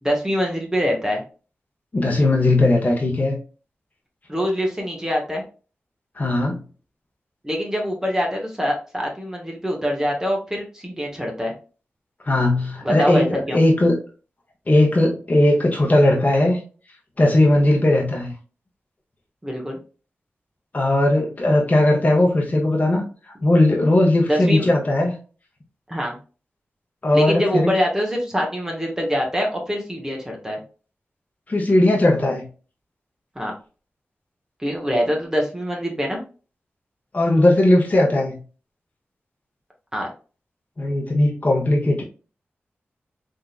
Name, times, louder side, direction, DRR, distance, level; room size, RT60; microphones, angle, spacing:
voice 1, 0.0-1.2 4.3-5.4 7.4-11.5 12.8-13.6 19.4-19.8 24.3-24.7 25.9-26.2 27.1-30.6 33.3-33.5 34.6-36.2 39.9-40.1, equal, 15° right, 0 dB, 1.1 m, -24 dB
voice 2, 1.9-3.4 6.2-6.6 12.3-13.9 14.7-16.6 17.2-18.3 20.7-23.0 23.4-25.1 27.0-27.7 31.5-32.5 37.1-38.4 40.8-42.0, left 1 dB, 35° left, -2 dB, 1.0 m, -18 dB
3.6 x 2.7 x 2.4 m, 0.36 s
cardioid pair, 60°, 4 cm